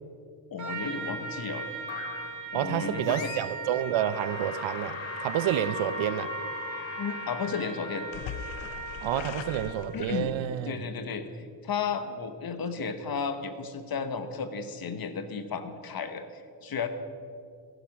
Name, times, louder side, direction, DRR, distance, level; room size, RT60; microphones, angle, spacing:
voice 1, 0.5-1.7 2.5-3.3 7.0-8.1 9.9-16.9, left 5 dB, 50° left, 10 dB, 1.4 m, -34 dB
Trumpet, 0.6-9.9, right 3 dB, 40° right, 2.1 m, -38 dB
sound 1, 1.9-2.4 3.0-3.7 4.0-10.4, left 11 dB, 70° left, 0.8 m, -41 dB
voice 2, 2.5-6.3 9.0-10.7, right 11 dB, 75° right, 15 dB, 0.8 m, -29 dB
16.5 x 10.5 x 6.1 m, 2.3 s
cardioid pair, 90°, 47 cm